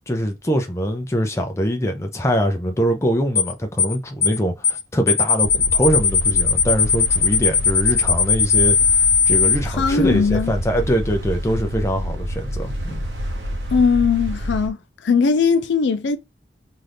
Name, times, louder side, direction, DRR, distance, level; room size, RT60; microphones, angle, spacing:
voice 1, 0.1-9.0 9.3-13.0, equal, 15° left, 0.5 m, -23 dB
sound 1, 3.4-3.5 3.8-4.0 4.2-4.4 4.6-4.8 5.1-9.6, left 6 dB, 35° left, 1.0 m, -17 dB
sound 2, 5.4-14.7, equal, 75° right, 0.8 m, -28 dB
voice 2, 9.7-10.5 13.7-14.8 15.0-16.2, left 5 dB, 80° left, 0.4 m, -19 dB
2.7 x 2.4 x 3.3 m
head